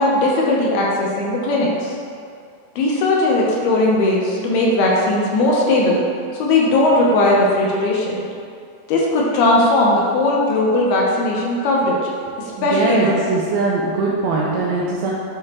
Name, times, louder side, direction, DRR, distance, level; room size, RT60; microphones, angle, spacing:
voice 1, 0.0-2.0 2.8-6.0 6.4-8.2 8.9-12.0 12.4-13.1, left 2 dB, 75° left, -3 dB, 2.5 m, -18 dB
voice 2, 12.6-15.1, right 3 dB, 90° right, -4 dB, 2.1 m, -21 dB
9.9 x 4.8 x 2.9 m, 2.3 s
omnidirectional pair, 5.0 m